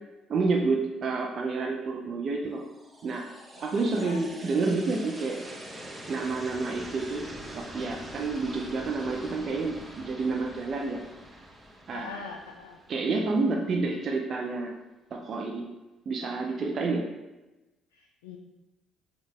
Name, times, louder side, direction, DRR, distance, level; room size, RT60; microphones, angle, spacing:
voice 1, 0.3-2.6 3.0-3.3 3.6-5.4 6.1-11.0 11.9-12.1 12.9-14.7 15.1-15.7 16.1-17.0, right 3 dB, 50° right, 0 dB, 0.5 m, -29 dB
sound 1, 2.6-13.7, right 1 dB, 20° right, 0.8 m, -44 dB
voice 2, 3.6-4.2 11.9-12.8 17.9-18.4, left 5 dB, 80° left, 2 dB, 0.3 m, -43 dB
5.3 x 2.4 x 3.4 m, 1.1 s
hypercardioid pair, 50°, 0 cm